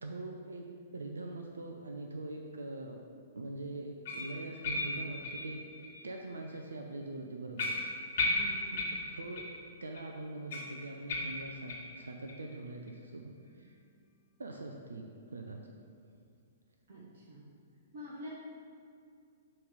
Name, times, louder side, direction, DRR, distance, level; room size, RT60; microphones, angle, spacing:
voice 1, 0.0-3.0 3.3-5.6 6.0-7.7 8.9-9.5 9.8-13.8 14.4-15.6, right 2 dB, 80° right, 2 dB, 0.5 m, -43 dB
sound 1, 4.0-6.0 6.4-6.6 7.0-7.1 7.6-9.6 9.9-10.0 10.5-12.0 12.3-12.4 12.9-13.0 13.5-13.6, left 2 dB, 60° left, 1.2 m, -36 dB
voice 2, 8.4-8.8 16.9-17.4 17.9-18.3, equal, 65° right, -6 dB, 1.3 m, -46 dB
6.9 x 3.2 x 5.2 m, 2.3 s
figure-of-eight pair, 115°, 0 cm